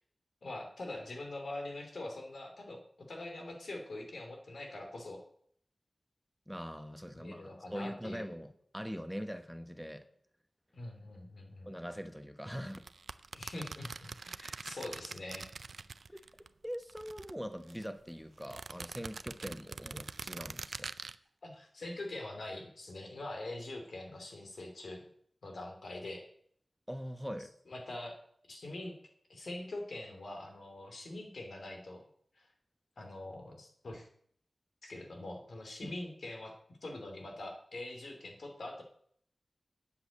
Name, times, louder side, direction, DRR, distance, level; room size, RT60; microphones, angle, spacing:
voice 1, 0.4-5.2 7.1-8.2 10.7-11.7 13.3-15.5 21.4-25.0 25.4-26.2 27.7-28.2 28.5-28.9 29.3-32.0 32.4-32.5 33.0-34.1 34.8-36.5 36.8-38.8, left 2 dB, 80° left, 3 dB, 2.7 m, -44 dB
voice 2, 6.5-10.1 11.7-12.8 16.1-16.2 16.6-20.9 26.9-27.5 35.8-35.9, equal, ahead, 9 dB, 1.0 m, -42 dB
sound 1, 12.7-16.5 16.7-17.9 18.4-21.1, right 4 dB, 80° right, 0.4 m, -44 dB
8.5 x 7.8 x 8.3 m, 0.64 s
wide cardioid pair, 80°, 0 cm